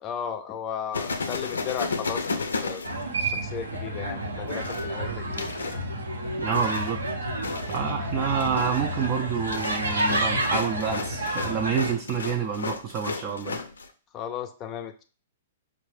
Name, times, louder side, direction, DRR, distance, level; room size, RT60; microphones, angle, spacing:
voice 1, 0.0-2.8 3.2-5.5 14.1-15.0, left 8 dB, 30° left, 7 dB, 0.5 m, -35 dB
sound 1, 0.9-3.6 4.5-5.8 6.5-7.1 7.4-7.9 8.3-13.9, left 4 dB, 80° left, 0.5 m, -33 dB
sound 2, 2.8-11.9, right 1 dB, 80° right, 0.7 m, -30 dB
voice 2, 6.4-7.0 7.7-13.6, right 6 dB, 35° right, 2 dB, 0.5 m, -28 dB
5.1 x 2.1 x 3.3 m, 0.37 s
figure-of-eight pair, 115°, 0 cm